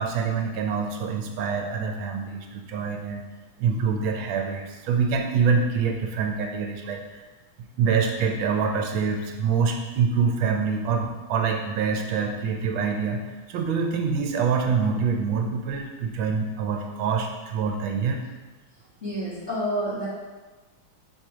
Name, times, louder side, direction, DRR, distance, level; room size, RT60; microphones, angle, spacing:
voice 1, 0.0-3.2 3.6-7.2 7.6-18.2, right 5 dB, 80° right, 4 dB, 1.4 m, -25 dB
voice 2, 19.0-20.0, equal, 35° left, -11 dB, 1.6 m, -28 dB
5.1 x 4.5 x 4.8 m, 1.2 s
omnidirectional pair, 2.2 m